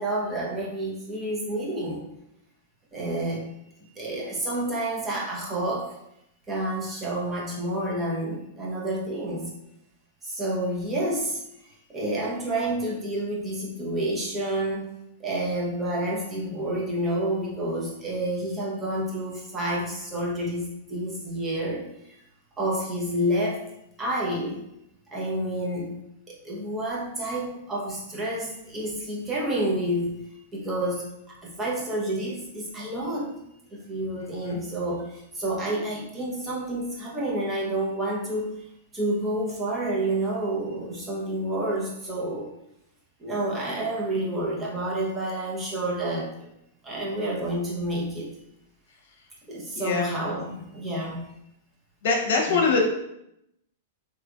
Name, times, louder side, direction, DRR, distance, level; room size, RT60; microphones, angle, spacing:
voice 1, 0.0-2.1 2.9-3.4 4.0-5.9 6.5-9.5 10.2-11.4 11.9-14.9 15.2-21.9 22.6-23.7 24.0-24.6 25.1-26.0 26.4-30.2 30.5-33.3 33.7-38.5 38.9-42.5 43.2-46.3 46.8-48.3 49.5-51.2 52.5-52.7, right 1 dB, 15° right, -4 dB, 0.9 m, -29 dB
voice 2, 3.0-3.3 34.2-34.6 49.8-50.1 52.0-52.8, left 4 dB, 70° left, 1 dB, 0.8 m, -25 dB
3.3 x 2.9 x 2.4 m, 0.79 s
hypercardioid pair, 120°, 0 cm